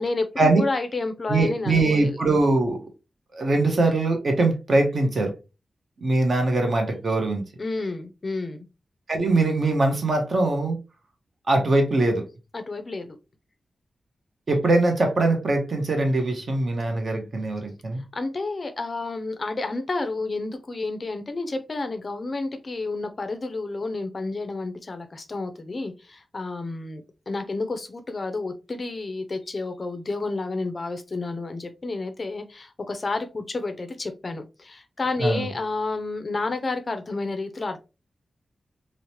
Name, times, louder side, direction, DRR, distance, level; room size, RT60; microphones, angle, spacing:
voice 1, 0.0-2.2 7.6-8.7 12.5-13.2 18.1-37.8, left 3 dB, 40° left, 0.4 m, -30 dB
voice 2, 1.3-2.8 3.3-5.3 6.0-7.4 9.1-10.8 11.5-12.2 14.5-18.0 35.2-35.5, right 2 dB, 50° right, 0.7 m, -22 dB
3.0 x 2.0 x 2.8 m
wide cardioid pair, 130°, 0 cm